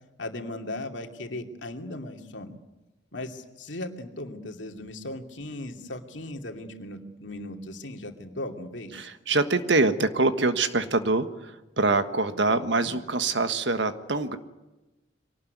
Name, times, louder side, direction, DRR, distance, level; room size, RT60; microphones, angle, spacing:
voice 1, 0.2-2.5 3.1-9.1 12.5-12.9, left 1 dB, 80° left, 4 dB, 2.6 m, -37 dB
voice 2, 8.9-14.4, right 3 dB, 70° right, 9 dB, 1.5 m, -25 dB
24.0 x 18.5 x 9.5 m, 1.1 s
head